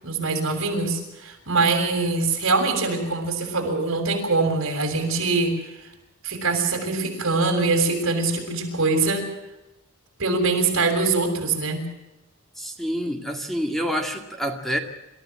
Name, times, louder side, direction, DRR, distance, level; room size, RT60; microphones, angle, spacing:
voice 1, 0.0-5.5 6.2-9.2 10.2-11.8, right 3 dB, 60° right, 3 dB, 6.8 m, -23 dB
voice 2, 12.6-14.8, equal, ahead, 3 dB, 2.1 m, -27 dB
28.0 x 14.5 x 7.7 m, 0.98 s
head